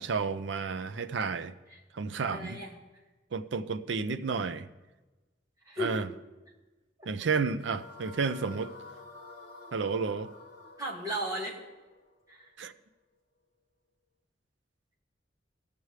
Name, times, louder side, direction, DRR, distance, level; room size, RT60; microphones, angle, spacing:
voice 1, 0.0-1.5 1.9-2.6 3.3-4.7 5.8-6.1 7.1-8.7 9.7-10.3 12.6-12.7, right 5 dB, 80° right, 0.5 m, -31 dB
voice 2, 2.2-2.7 5.6-5.9 10.8-11.6 12.3-12.5, equal, 20° right, 2.1 m, -35 dB
sound 1, 7.6-12.8, left 3 dB, 55° left, 1.4 m, -50 dB
18.0 x 6.8 x 3.2 m
head